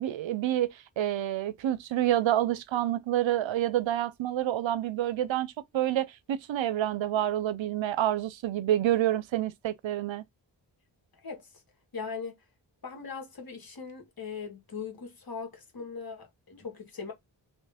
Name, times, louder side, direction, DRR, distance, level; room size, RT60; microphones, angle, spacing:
voice 1, 0.0-10.3, right 12 dB, 75° right, 0.6 m, -28 dB
voice 2, 11.9-12.4 12.8-17.1, left 5 dB, 50° left, 1.6 m, -40 dB
3.1 x 3.1 x 3.4 m
cardioid pair, 60°, 46 cm